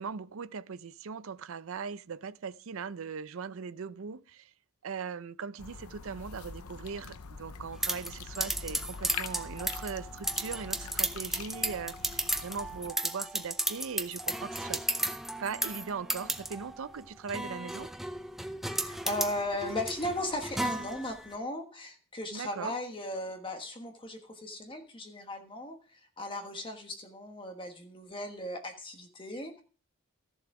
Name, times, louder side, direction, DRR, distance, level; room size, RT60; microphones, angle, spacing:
voice 1, 0.0-4.5 4.8-14.8 15.4-17.9 22.3-22.7, right 6 dB, 70° right, 0.5 m, -39 dB
sound 1, 5.6-12.9, left 5 dB, 90° left, 0.8 m, -44 dB
sound 2, 7.8-21.3, right 1 dB, ahead, 0.5 m, -34 dB
voice 2, 18.6-29.6, left 1 dB, 25° left, 1.3 m, -37 dB
14.0 x 7.1 x 4.8 m
head